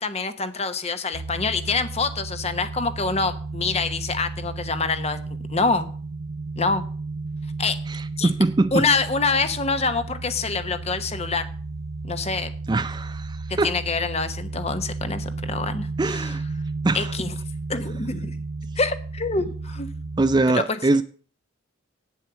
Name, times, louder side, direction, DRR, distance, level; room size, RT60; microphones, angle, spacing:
voice 1, 0.0-5.2 5.5-5.9 6.6-6.8 7.6-7.8 8.2-8.3 8.7-11.5 12.0-12.5 13.6-16.4 16.9-17.3 17.7-18.4 18.8-19.9 20.5-20.8, left 4 dB, 30° left, 1.0 m, -26 dB
sound 1, 1.1-20.4, right 3 dB, 70° right, 0.6 m, -33 dB
voice 2, 7.9-8.8 12.7-13.7 16.0-16.4 16.8-17.1 20.2-21.0, right 2 dB, 20° right, 0.4 m, -22 dB
9.1 x 7.6 x 6.8 m
head